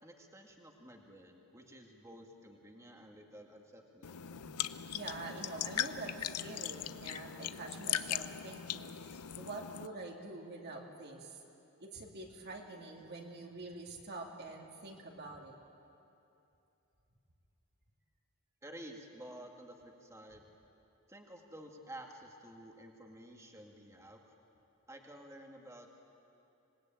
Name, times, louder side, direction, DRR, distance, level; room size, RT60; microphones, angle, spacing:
voice 1, 0.0-4.2 18.6-20.4 21.1-24.2 24.9-26.0, right 1 dB, 15° right, 2 dB, 1.9 m, -52 dB
sound 1, 4.0-9.9, left 10 dB, 90° left, 0.7 m, -39 dB
voice 2, 4.3-11.4 11.8-15.6, right 2 dB, 45° right, 0 dB, 2.5 m, -46 dB
26.0 x 20.0 x 9.1 m, 2.8 s
head